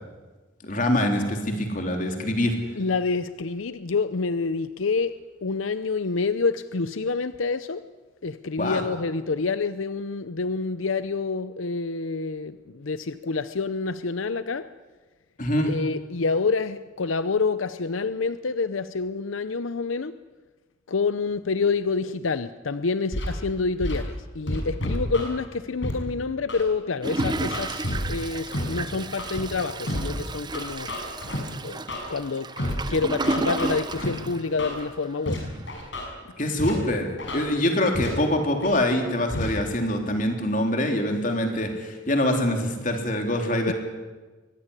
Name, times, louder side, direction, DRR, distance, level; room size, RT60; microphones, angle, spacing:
voice 1, 0.6-2.5 8.6-8.8 15.4-15.7 36.4-43.7, left 1 dB, 40° left, 3.6 m, -24 dB
voice 2, 2.8-7.9 8.2-14.7 15.7-20.2 20.9-30.9 31.6-32.6 32.9-35.5 37.3-37.5 43.7-43.8, left 4 dB, 90° left, 0.7 m, -27 dB
Scratching (performance technique), 23.1-23.3 23.8-24.0 24.5-25.3 25.8-25.9 26.5-26.6 27.2-28.0 28.5-28.6 29.2-29.4 29.9-30.0 30.5-31.4 31.9-32.0 32.6-32.8 33.2-34.1 34.6-34.7 35.3-35.4 35.7-36.0 36.6-36.7 37.2-37.4 37.9-38.1 38.6-38.8 39.3-39.5, left 1 dB, 65° left, 6.8 m, -29 dB
Toilet flush, 27.0-35.1 35.6-35.7 35.8-35.9, right 3 dB, 20° right, 0.8 m, -32 dB
23.5 x 18.0 x 9.9 m
head